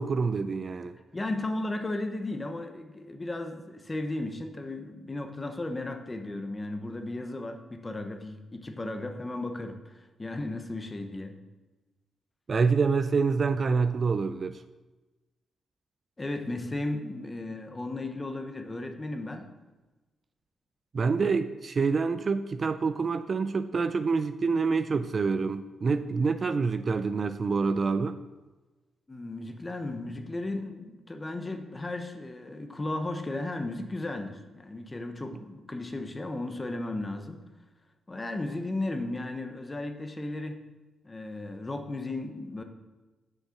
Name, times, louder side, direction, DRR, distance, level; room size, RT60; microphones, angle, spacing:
voice 1, 0.0-1.0 12.5-14.6 20.9-28.2, right 4 dB, 35° right, 11 dB, 0.3 m, -27 dB
voice 2, 1.1-11.4 16.2-19.5 29.1-37.4 38.1-40.7 41.0-42.6, left 2 dB, 20° left, 6 dB, 0.8 m, -35 dB
7.3 x 6.5 x 5.8 m, 1.2 s
wide cardioid pair, 135°, 0 cm